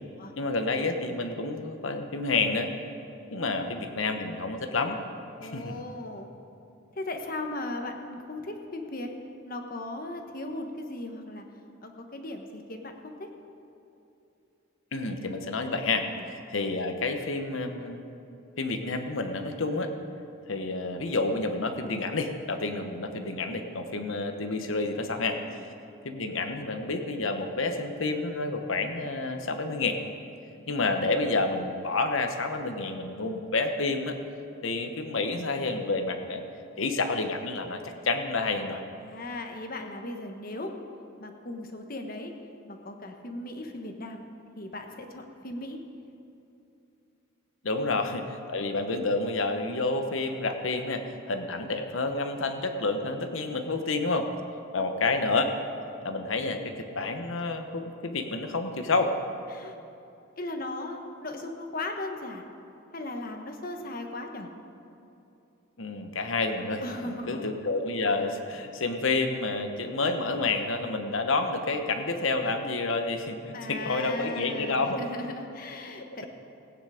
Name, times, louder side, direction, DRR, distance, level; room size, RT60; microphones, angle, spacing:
voice 1, 0.4-2.7 3.3-5.0 5.4-5.8 14.9-16.1 16.5-18.0 18.6-19.9 20.5-25.4 26.0-30.0 30.7-34.1 34.6-36.4 36.8-37.8 38.0-38.8 47.6-54.3 54.7-55.5 56.0-59.1 65.8-75.0, left 3 dB, 70° left, 6 dB, 1.1 m, -29 dB
voice 2, 5.4-6.3 7.0-9.1 9.4-11.4 11.8-13.3 16.0-16.2 25.4-25.6 30.6-31.0 39.0-40.7 41.2-42.3 42.7-44.3 44.6-45.8 47.7-48.3 54.7-54.9 59.5-59.8 60.4-62.5 62.9-64.5 66.8-67.5 73.5-76.3, left 2 dB, 45° left, 4 dB, 1.2 m, -37 dB
17.5 x 9.4 x 5.0 m, 2.8 s
head